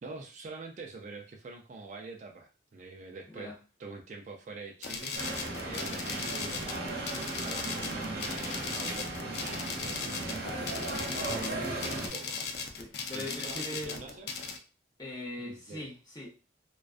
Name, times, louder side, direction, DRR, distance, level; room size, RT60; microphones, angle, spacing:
voice 1, 0.0-3.5 3.8-5.2 5.6-6.9 7.4-10.7 11.3-12.4 13.1-14.3 15.4-15.9, right 3 dB, 40° right, 3 dB, 0.3 m, -44 dB
sound 1, 4.8-14.6, left 5 dB, 60° left, 0.4 m, -38 dB
sound 2, 5.1-12.1, right 2 dB, 55° right, 0.8 m, -36 dB
voice 2, 12.8-14.0 15.0-16.3, left 1 dB, 20° left, -4 dB, 0.8 m, -41 dB
2.4 x 2.2 x 2.4 m, 0.35 s
head